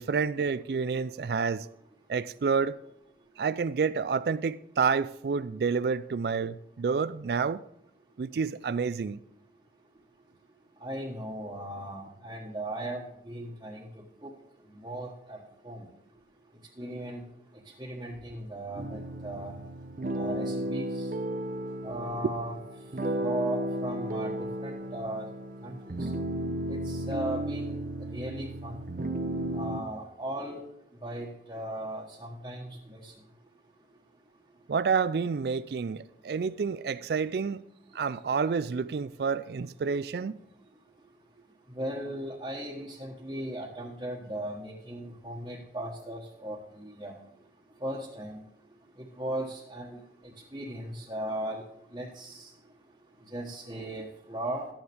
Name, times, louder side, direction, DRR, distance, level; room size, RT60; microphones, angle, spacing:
voice 1, 0.0-1.7 2.1-2.7 3.4-7.6 8.2-9.2 34.7-37.6 37.9-40.3, right 5 dB, 65° right, 0.4 m, -29 dB
voice 2, 10.8-13.8 14.2-14.3 14.8-15.4 15.6-15.8 16.8-17.2 17.8-19.5 20.1-21.1 21.8-22.6 23.2-24.4 24.6-25.2 25.6-26.1 26.7-27.8 28.1-28.8 29.5-30.6 31.0-33.1 41.8-47.1 47.8-48.4 49.0-50.0 50.5-51.6 51.9-52.5 53.3-54.7, right 1 dB, 25° right, 1.3 m, -37 dB
sound 1, 18.8-29.8, right 1 dB, 50° right, 0.8 m, -34 dB
12.5 x 9.4 x 3.5 m
head